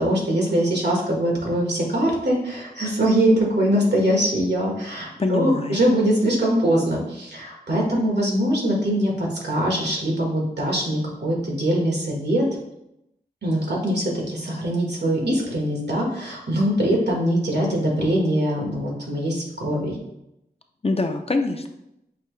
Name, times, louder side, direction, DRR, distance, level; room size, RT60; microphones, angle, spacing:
voice 1, 0.0-12.4 13.4-20.0, right 1 dB, 80° right, -2 dB, 1.4 m, -22 dB
voice 2, 5.2-5.8 20.8-21.7, left 3 dB, 35° left, 5 dB, 0.5 m, -24 dB
5.8 x 2.8 x 3.1 m, 0.83 s
wide cardioid pair, 55°, 17 cm